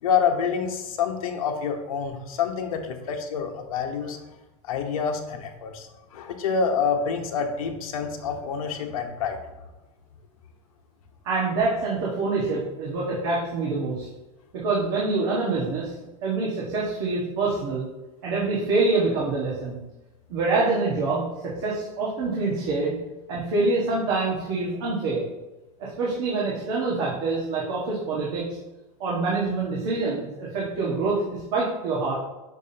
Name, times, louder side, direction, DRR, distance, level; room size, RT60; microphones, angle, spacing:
voice 1, 0.0-4.2 4.6-9.4, left 6 dB, 65° left, 4 dB, 1.1 m, -27 dB
voice 2, 11.2-14.1 14.5-15.9 16.2-17.9 18.2-19.8 20.3-23.0 23.3-25.2 25.8-28.5 29.0-32.1, right 3 dB, 40° right, -5 dB, 1.4 m, -26 dB
7.1 x 6.2 x 2.8 m, 1.1 s
supercardioid pair, 175°, 20 cm